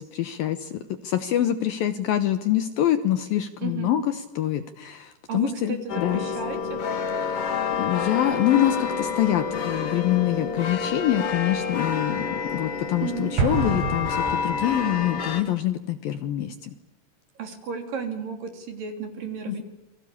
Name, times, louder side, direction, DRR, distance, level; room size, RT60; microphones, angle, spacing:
voice 1, 0.0-6.2 7.1-16.7 19.5-19.6, left 12 dB, 70° left, 11 dB, 2.4 m, -25 dB
voice 2, 3.6-4.0 5.3-6.8 13.0-13.4 17.4-19.6, right 6 dB, 50° right, 6 dB, 4.6 m, -33 dB
sound 1, 5.9-15.4, left 6 dB, 40° left, 2.4 m, -29 dB
Explosion, 13.4-15.0, right 5 dB, 75° right, 5.8 m, -28 dB
28.5 x 22.5 x 8.6 m, 1.0 s
omnidirectional pair, 5.1 m